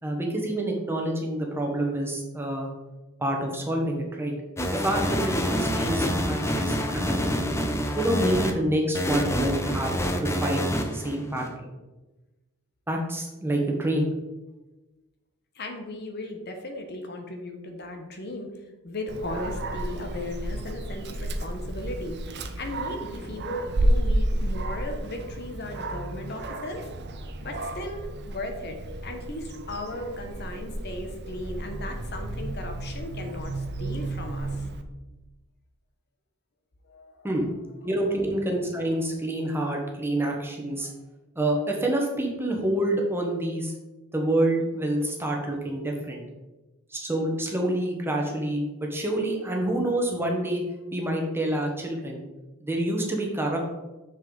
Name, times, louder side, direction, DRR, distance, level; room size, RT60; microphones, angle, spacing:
voice 1, 0.0-2.7 3.2-4.3 4.7-7.5 7.9-9.9 10.2-10.6 10.9-11.7 12.9-14.1 37.2-37.5 37.8-40.9 41.3-43.7 44.1-46.2 46.9-50.6 50.9-52.2 52.6-53.6, right 1 dB, 10° right, 0 dB, 1.2 m, -27 dB
sound 1, 4.6-8.5 8.9-11.5, equal, 15° left, 0.6 m, -27 dB
voice 2, 15.5-18.5 18.8-22.2 22.6-26.9 27.4-28.0 28.3-34.9 36.9-37.3, left 1 dB, 50° left, 4 dB, 1.0 m, -36 dB
Dog, 19.1-34.8, right 1 dB, 50° right, 0.7 m, -31 dB
6.9 x 6.3 x 3.9 m, 1.1 s
head